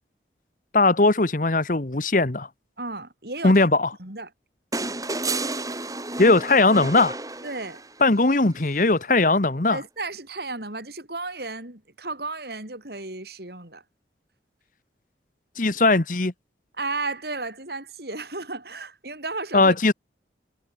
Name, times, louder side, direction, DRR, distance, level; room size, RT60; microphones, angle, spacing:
voice 1, 0.7-2.5 3.4-3.9 6.2-7.1 8.0-9.8 15.6-16.3 19.5-19.9, left 2 dB, 45° left, 1.2 m, -19 dB
voice 2, 2.8-3.7 4.0-4.3 7.4-7.8 9.7-13.8 16.8-19.7, right 3 dB, 60° right, 4.6 m, -34 dB
sound 1, 4.7-8.1 9.6-9.7, right 2 dB, 20° right, 5.1 m, -31 dB
head